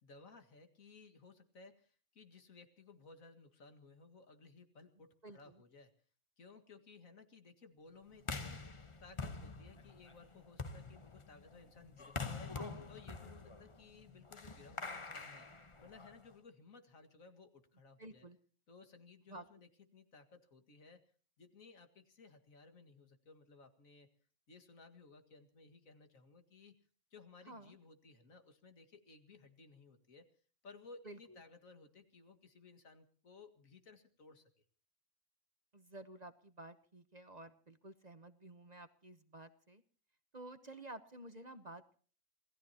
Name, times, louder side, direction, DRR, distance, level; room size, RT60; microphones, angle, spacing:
voice 1, 0.0-5.9 6.4-12.6 12.9-18.3 18.7-21.1 21.4-24.1 24.5-26.8 27.1-30.3 30.6-34.6, left 4 dB, 75° left, 7 dB, 2.3 m, -59 dB
voice 2, 5.2-5.6 12.5-12.8 18.0-18.4 19.3-19.5 27.5-27.8 31.0-31.4 35.7-39.8 40.3-42.0, right 2 dB, 35° right, 11 dB, 1.0 m, -52 dB
sound 1, 8.2-16.3, left 4 dB, 25° left, 1.0 m, -46 dB
27.5 x 18.0 x 2.9 m, 0.42 s
omnidirectional pair, 1.4 m